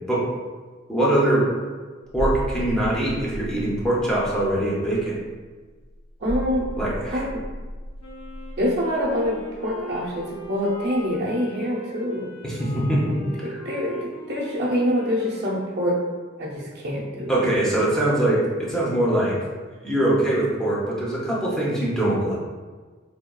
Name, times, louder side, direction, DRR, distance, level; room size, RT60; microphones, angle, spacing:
voice 1, 0.9-1.4 2.1-5.2 6.8-7.2 12.4-13.6 17.3-19.4 19.8-22.4, right 1 dB, 5° left, -7 dB, 0.5 m, -22 dB
sound 1, 2.1-10.5 10.8-11.0, right 1 dB, 80° right, 0.4 m, -34 dB
voice 2, 6.2-6.7 7.1-7.4 8.6-12.3 13.4-16.0 16.4-17.4, equal, 55° right, -6 dB, 0.7 m, -25 dB
Wind instrument woodwind instrument, 8.0-16.1, equal, 80° left, 0.7 m, -41 dB
3.4 x 2.2 x 2.2 m, 1.4 s
head